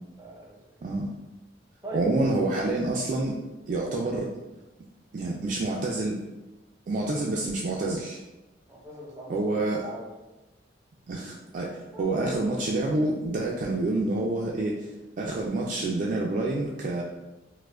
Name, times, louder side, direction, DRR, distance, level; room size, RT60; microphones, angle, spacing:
voice 1, 0.2-0.7 1.8-2.0 8.7-10.1 11.9-12.4, right 1 dB, 15° right, -3 dB, 0.7 m, -41 dB
voice 2, 1.9-3.4 3.7-4.4 5.1-6.2 6.9-8.2 9.3-9.9 11.1-14.9 15.2-17.0, right 2 dB, 45° right, -2 dB, 0.3 m, -28 dB
4.5 x 2.1 x 2.3 m, 1.1 s
head